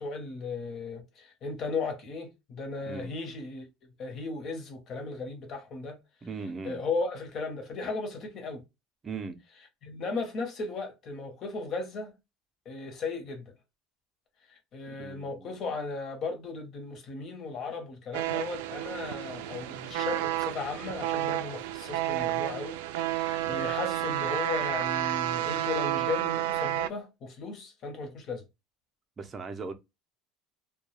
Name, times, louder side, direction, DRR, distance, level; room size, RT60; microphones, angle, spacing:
voice 1, 0.0-3.7 4.0-6.0 6.6-8.6 9.8-12.1 12.6-13.5 14.5-28.5, left 4 dB, 45° left, 0.9 m, -36 dB
voice 2, 2.8-3.1 6.2-6.8 9.0-9.4 14.9-15.5 23.4-23.7 29.2-29.7, right 4 dB, 20° right, 0.5 m, -39 dB
sound 1, 18.1-26.9, right 14 dB, 85° right, 0.3 m, -31 dB
2.2 x 2.2 x 3.0 m
cardioid pair, 135°, 0 cm